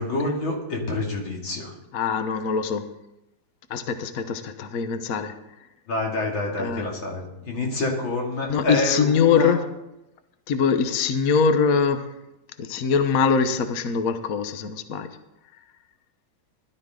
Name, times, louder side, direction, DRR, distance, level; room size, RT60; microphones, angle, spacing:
voice 1, 0.0-1.7 5.9-9.6, left 2 dB, 85° left, -1 dB, 3.3 m, -27 dB
voice 2, 1.9-2.9 3.7-5.3 6.6-6.9 8.5-9.6 10.5-12.1 12.6-15.1, left 6 dB, 55° left, 8 dB, 1.2 m, -23 dB
16.0 x 12.0 x 3.8 m, 0.90 s
omnidirectional pair, 2.1 m